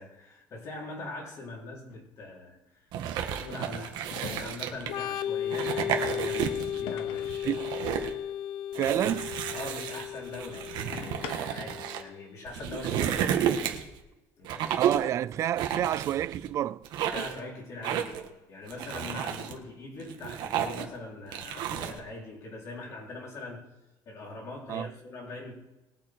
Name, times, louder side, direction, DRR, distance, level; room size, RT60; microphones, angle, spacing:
voice 1, 0.0-2.8 3.2-7.6 8.7-9.0 9.5-13.5 14.4-15.0 17.1-23.7 24.1-25.5, left 2 dB, 35° left, 3.9 m, -42 dB
sound 1, 1.9-2.1 4.1-4.8 6.9-7.5 8.8-9.4 10.9-11.8, left 9 dB, 75° left, 1.0 m, -42 dB
sound 2, 2.9-5.0 5.5-6.8 7.2-8.1 8.7-12.0 12.5-14.0 14.4-15.1 15.6-16.5 16.8-17.4 17.8-18.3 18.7-19.5 20.0-21.0 21.3-22.0, right 9 dB, 55° right, 1.5 m, -32 dB
Organ, 4.9-12.4, left 10 dB, 50° left, 0.4 m, -35 dB
voice 2, 8.8-9.4 14.6-16.8 24.7-24.9, right 11 dB, 35° right, 0.4 m, -29 dB
21.0 x 7.5 x 4.6 m
cardioid pair, 175°, 9 cm